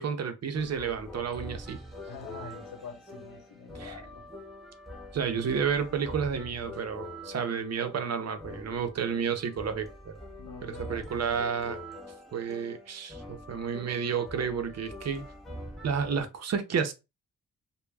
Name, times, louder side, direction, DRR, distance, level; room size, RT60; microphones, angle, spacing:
voice 1, 0.0-1.8 3.8-4.0 5.1-10.2 10.6-11.8 12.3-15.2 15.8-16.9, right 6 dB, 50° right, 0.6 m, -31 dB
sound 1, 0.5-16.2, left 1 dB, ahead, 0.7 m, -44 dB
voice 2, 2.1-4.2 10.4-11.0, left 4 dB, 90° left, 0.9 m, -45 dB
2.2 x 2.1 x 3.2 m
cardioid pair, 70°, 35 cm